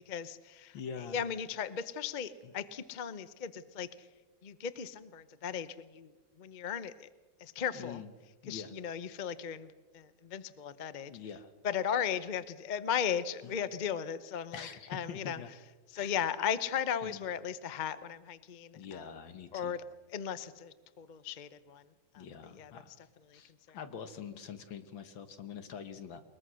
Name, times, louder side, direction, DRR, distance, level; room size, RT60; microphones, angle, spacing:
voice 1, 0.1-0.7 1.1-3.9 4.4-6.1 6.4-7.1 7.4-8.0 8.5-11.1 11.6-15.4 15.9-19.1 19.5-19.8 20.1-21.8 22.1-22.7 23.3-23.4 23.7-23.8, left 8 dB, 55° left, 14 dB, 0.5 m, -36 dB
voice 2, 0.7-1.2 2.4-2.5 7.7-8.1 8.4-8.7 11.1-11.5 13.4-13.5 14.5-15.5 15.9-16.1 17.0-17.2 18.7-19.8 22.2-22.9 23.3-26.2, left 7 dB, 75° left, 10 dB, 2.2 m, -45 dB
21.5 x 21.5 x 6.3 m, 1.3 s
omnidirectional pair, 2.1 m